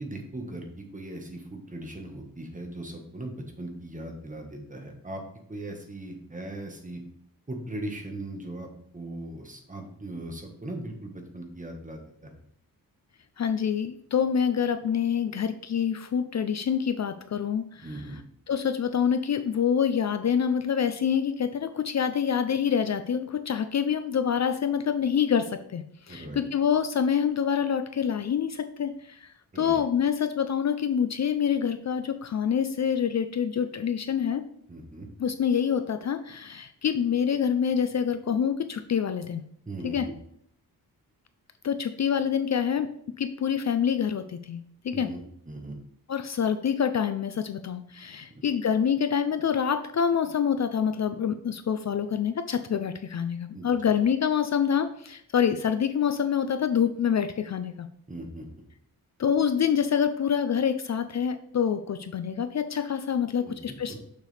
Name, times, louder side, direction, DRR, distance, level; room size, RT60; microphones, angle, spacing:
voice 1, 0.0-5.2 5.5-7.0 7.5-12.3 17.8-18.2 26.1-26.4 29.5-29.8 34.7-35.1 39.6-40.1 44.9-45.2 45.5-45.7 48.3-48.4 53.5-54.0 58.1-58.5 63.4-64.0, right 1 dB, 20° right, 3 dB, 1.3 m, -39 dB
voice 2, 13.4-17.9 18.5-34.4 35.2-39.4 39.8-40.1 41.6-42.9 43.2-45.1 46.1-57.9 59.2-64.0, left 7 dB, 50° left, 10 dB, 0.5 m, -26 dB
6.6 x 6.5 x 3.3 m, 0.70 s
wide cardioid pair, 140°, 36 cm